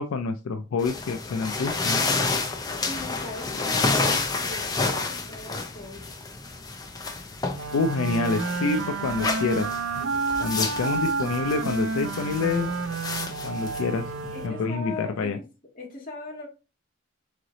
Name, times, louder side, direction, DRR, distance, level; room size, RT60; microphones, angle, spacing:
voice 1, 0.0-2.0 7.7-9.7 10.0-10.1 10.4-12.7 13.4-14.1 14.4-15.4, left 4 dB, 80° left, 8 dB, 0.4 m, -27 dB
sound 1, 0.8-14.5, left 3 dB, 20° left, 0.5 m, -30 dB
voice 2, 2.8-6.0 14.3-15.4 15.8-16.5, left 2 dB, 40° left, 0 dB, 1.6 m, -39 dB
sound 2, 7.5-15.0, right 4 dB, 70° right, 0.4 m, -30 dB
3.8 x 3.2 x 3.8 m, 0.31 s
head